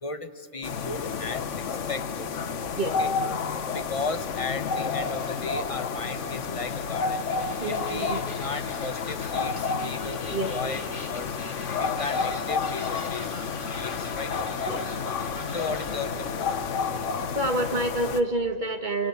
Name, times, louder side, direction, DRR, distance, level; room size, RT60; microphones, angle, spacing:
voice 1, 0.0-2.3 3.0-3.1 3.6-7.2 7.6-10.8 11.1-11.4 11.7-13.4 13.7-14.3 15.5-16.5, left 3 dB, 30° left, 9 dB, 1.1 m, -35 dB
sound 1, 0.6-18.2, left 5 dB, 80° left, 1.3 m, -30 dB
sound 2, 3.9-16.0, left 2 dB, 45° left, 2.9 m, -44 dB
voice 2, 7.6-8.2 10.3-10.5 14.7-14.9 17.4-19.1, right 1 dB, 40° right, 5 dB, 2.0 m, -27 dB
26.5 x 26.0 x 8.2 m, 2.4 s
omnidirectional pair, 1.3 m